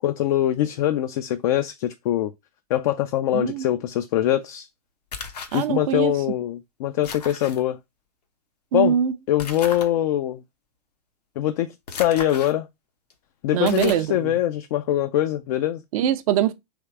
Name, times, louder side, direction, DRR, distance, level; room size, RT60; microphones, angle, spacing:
voice 1, 0.0-2.3 2.7-4.7 5.5-7.8 8.7-9.0 9.3-10.4 11.4-12.7 13.4-15.8, left 12 dB, 60° left, 0.4 m, -23 dB
voice 2, 3.3-3.7 5.5-6.1 8.7-9.1 13.5-14.4 15.9-16.5, right 9 dB, 60° right, 0.6 m, -23 dB
sound 1, 5.1-5.7 7.0-7.6 9.4-9.9 11.9-12.5 13.1-13.2 13.7-14.1, left 5 dB, 80° left, 0.9 m, -35 dB
3.5 x 3.1 x 4.4 m
hypercardioid pair, 95°, 20 cm